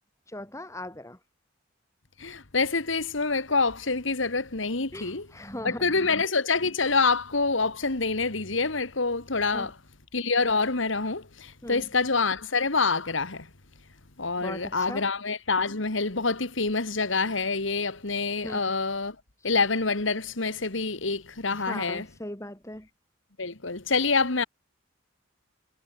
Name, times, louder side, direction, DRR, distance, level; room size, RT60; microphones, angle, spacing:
voice 1, 0.3-1.2 4.9-6.1 9.5-9.7 11.6-11.9 14.4-15.1 18.4-18.6 21.5-22.9, left 1 dB, 15° left, 7.5 m, -39 dB
voice 2, 2.2-5.3 5.6-9.7 10.1-13.5 14.2-19.2 19.4-22.0 23.4-24.4, left 4 dB, 70° left, 2.1 m, -26 dB
head